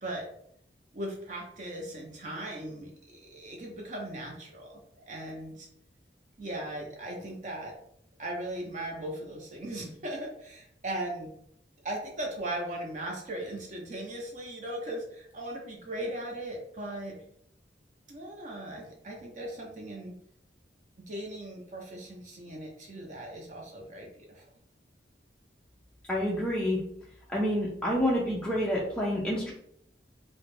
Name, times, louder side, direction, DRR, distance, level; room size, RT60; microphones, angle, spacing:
voice 1, 0.9-5.7 6.4-7.7 8.2-11.3 11.8-17.2 18.1-20.2 21.0-24.4, right 1 dB, 40° right, 0 dB, 0.6 m, -38 dB
voice 2, 26.1-26.8 27.3-29.5, equal, 5° left, -5 dB, 0.3 m, -28 dB
2.3 x 2.1 x 3.1 m, 0.68 s
head